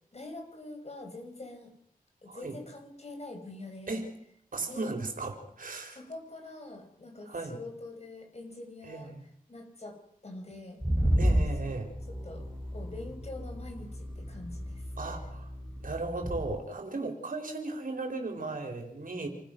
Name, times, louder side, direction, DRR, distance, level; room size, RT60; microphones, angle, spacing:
voice 1, 0.1-1.7 2.2-4.0 4.7-4.9 5.9-9.1 9.5-10.0 10.2-10.8 11.6-11.8 12.2-12.5 12.7-15.1, left 2 dB, 45° left, 4 dB, 5.4 m, -44 dB
voice 2, 4.5-6.0 7.3-7.6 8.8-9.2 11.2-11.9 15.0-15.5 15.8-19.3, right 3 dB, 70° right, 4 dB, 4.1 m, -36 dB
sound 1, 10.8-16.5, equal, 5° left, 4.8 m, -32 dB
28.0 x 15.5 x 6.1 m, 0.72 s
wide cardioid pair, 90°, 15 cm